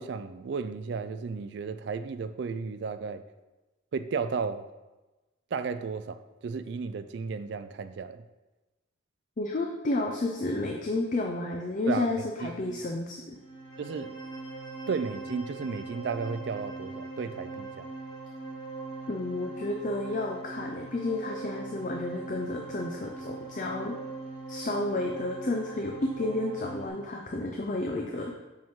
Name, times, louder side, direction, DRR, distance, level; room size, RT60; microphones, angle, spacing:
voice 1, 0.0-3.2 3.9-4.7 5.5-8.2 11.9-12.8 13.8-14.1 14.9-17.9, right 5 dB, 60° right, 0.3 m, -34 dB
voice 2, 9.4-13.4 19.1-24.0 24.5-28.4, left 2 dB, 40° left, 0.5 m, -31 dB
sound 1, 13.3-26.9, right 3 dB, 80° left, 1.7 m, -41 dB
5.7 x 5.1 x 3.6 m
head